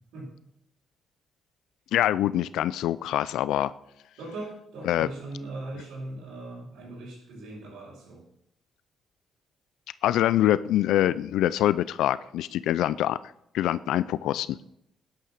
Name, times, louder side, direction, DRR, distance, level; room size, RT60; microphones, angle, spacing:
voice 1, 1.9-3.7 4.9-5.1 10.0-13.2 13.5-14.6, left 13 dB, 85° left, 16 dB, 0.4 m, -24 dB
voice 2, 4.2-8.2, right 2 dB, 85° right, -8 dB, 6.1 m, -39 dB
13.5 x 9.9 x 6.5 m, 0.76 s
cardioid pair, 90°, 0 cm